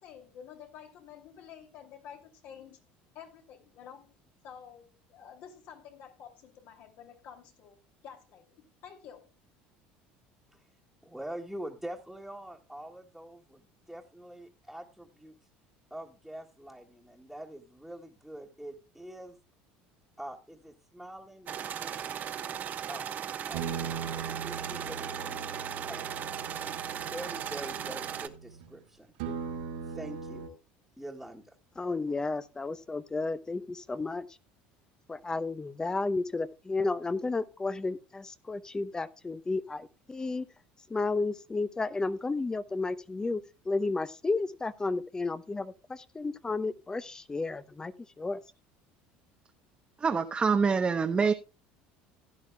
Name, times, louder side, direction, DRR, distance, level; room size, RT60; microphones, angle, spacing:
voice 1, 0.0-2.8 3.1-4.1 4.4-9.3, left 8 dB, 65° left, 2.7 m, -50 dB
voice 2, 11.0-15.4 15.9-19.4 20.2-22.1 22.9-23.2 23.5-23.7 24.2-25.4 25.8-26.3 26.9-29.1 29.8-30.5 31.0-31.6, right 1 dB, ahead, 1.7 m, -44 dB
sound 1, 21.5-28.3, right 9 dB, 45° right, 1.1 m, -37 dB
sound 2, 23.5-28.7 29.2-30.5, right 6 dB, 85° right, 4.0 m, -40 dB
voice 3, 31.8-34.3 35.1-40.5 40.9-48.4, left 3 dB, 15° left, 0.7 m, -32 dB
voice 4, 50.0-51.3, right 5 dB, 25° right, 0.8 m, -25 dB
16.0 x 10.5 x 2.3 m
supercardioid pair, 100°, 4 cm